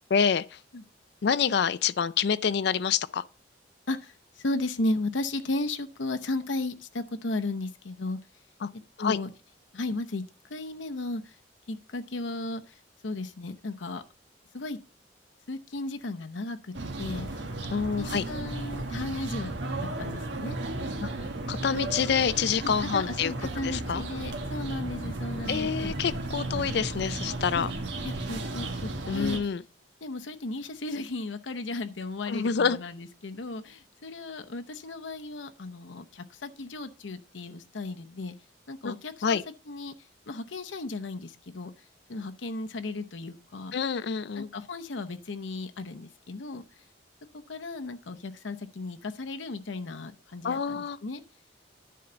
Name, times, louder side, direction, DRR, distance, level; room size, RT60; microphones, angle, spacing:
voice 1, 0.1-0.6 1.2-3.2 8.6-8.7 9.0-9.2 17.7-18.2 21.0-21.1 21.5-23.3 23.6-24.0 25.5-27.7 29.1-29.6 32.3-32.8 38.8-38.9 39.2-39.4 43.7-44.5 50.4-51.0, left 6 dB, 60° left, 0.4 m, -27 dB
voice 2, 3.9-8.2 8.7-9.3 9.7-10.2 10.5-11.4 11.7-12.8 13.0-14.0 14.5-14.8 15.5-17.4 18.0-20.6 22.6-25.9 27.5-27.7 28.0-29.6 30.0-38.3 38.7-39.4 39.7-39.9 40.3-41.7 42.1-43.7 44.3-46.6 47.3-51.2, left 2 dB, 90° left, 0.8 m, -35 dB
sound 1, 16.7-29.4, right 2 dB, 75° right, 1.5 m, -34 dB
10.0 x 3.9 x 6.8 m
head